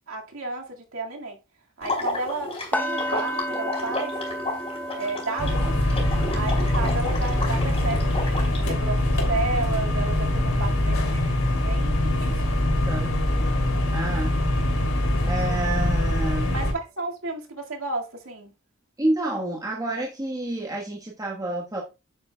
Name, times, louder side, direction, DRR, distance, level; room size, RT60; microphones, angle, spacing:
voice 1, 0.0-1.4 1.8-4.1 4.9-5.7 6.3-11.2 11.7-12.5 16.5-18.5, right 3 dB, 75° right, 2.0 m, -32 dB
Water / Liquid, 1.8-8.6, left 2 dB, 30° left, 4.0 m, -32 dB
sound 1, 2.7-12.7 13.0-13.3 13.7-13.8, equal, 10° left, 0.8 m, -36 dB
sound 2, 5.4-16.7, left 1 dB, 80° left, 2.9 m, -23 dB
voice 2, 12.9-13.2 13.9-14.3 15.2-16.7 19.0-21.8, right 1 dB, 15° right, 1.3 m, -29 dB
9.4 x 8.4 x 2.3 m
head